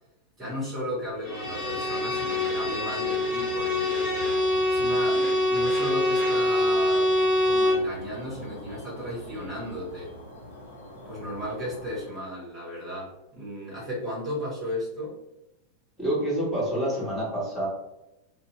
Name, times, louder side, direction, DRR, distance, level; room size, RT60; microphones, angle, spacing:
voice 1, 0.4-4.2 4.7-7.1 7.4-10.1 11.0-15.2, equal, 20° right, -7 dB, 1.1 m, -35 dB
Bowed string instrument, 1.2-7.9, left 1 dB, 20° left, 1.2 m, -25 dB
sound 1, 1.4-12.0, left 1 dB, 65° left, 0.7 m, -44 dB
voice 2, 16.0-17.7, right 1 dB, 5° left, -8 dB, 1.3 m, -27 dB
2.6 x 2.0 x 2.8 m, 0.90 s
figure-of-eight pair, 90°, 0 cm